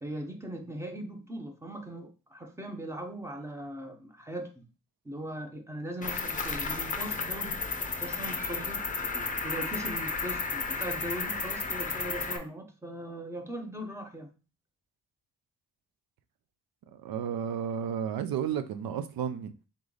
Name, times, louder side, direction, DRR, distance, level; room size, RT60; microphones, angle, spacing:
voice 1, 0.0-4.7 5.0-7.6 8.0-8.8 9.4-14.3, right 1 dB, 10° right, 0.7 m, -39 dB
Cricket, 6.0-12.4, left 4 dB, 25° left, 0.6 m, -33 dB
voice 2, 16.9-19.5, right 8 dB, 90° right, 0.6 m, -32 dB
3.7 x 3.2 x 3.9 m
wide cardioid pair, 130°, 34 cm